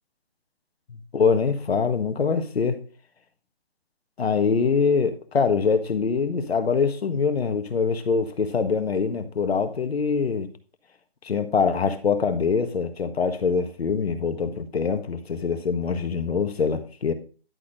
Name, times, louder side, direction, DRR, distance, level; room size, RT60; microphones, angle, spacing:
voice 1, 1.1-2.8 4.2-10.5 11.2-17.1, left 5 dB, 80° left, 1.5 m, -24 dB
11.0 x 4.3 x 5.2 m
hypercardioid pair, 165°, 31 cm